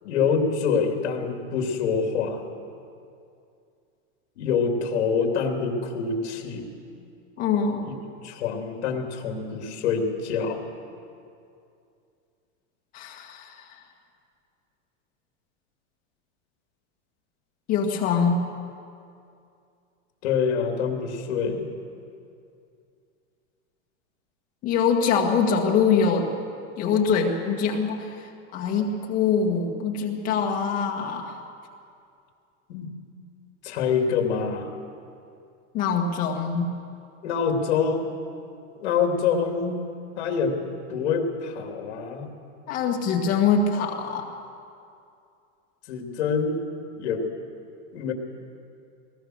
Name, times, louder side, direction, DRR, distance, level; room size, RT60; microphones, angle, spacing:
voice 1, 0.0-2.4 4.4-6.7 7.8-7.9 8.2-10.6 20.2-21.7 32.7-32.9 33.6-34.7 37.2-38.2 38.7-39.8 40.2-40.6 40.9-42.3 45.9-46.6 47.0-47.3 47.9-48.1, left 5 dB, 65° left, 3 dB, 3.0 m, -26 dB
voice 2, 7.4-7.9 12.9-13.5 17.7-18.4 24.6-26.3 26.8-28.1 28.5-31.4 35.7-36.7 42.7-44.3, left 6 dB, 25° left, 0 dB, 1.7 m, -23 dB
20.5 x 19.5 x 6.5 m, 2.5 s
supercardioid pair, 180°, 36 cm